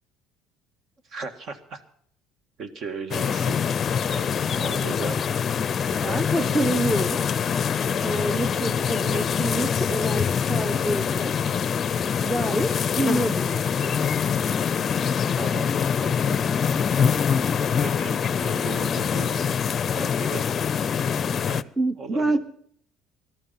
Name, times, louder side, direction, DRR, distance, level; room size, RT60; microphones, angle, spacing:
voice 1, 1.0-1.8 2.6-3.6 4.0-5.2 5.7-6.5 8.7-9.3 15.3-19.6 20.0-20.4 21.4-21.7 22.0-22.4, right 4 dB, 50° right, 9 dB, 1.7 m, -38 dB
sound 1, 3.1-21.6, left 7 dB, 40° left, 0.5 m, -24 dB
voice 2, 6.0-7.2 8.0-11.3 12.2-12.7 13.0-14.0 21.8-22.4, right 1 dB, 15° right, 10 dB, 0.9 m, -27 dB
17.5 x 12.5 x 5.7 m, 0.63 s
supercardioid pair, 90°, 0 cm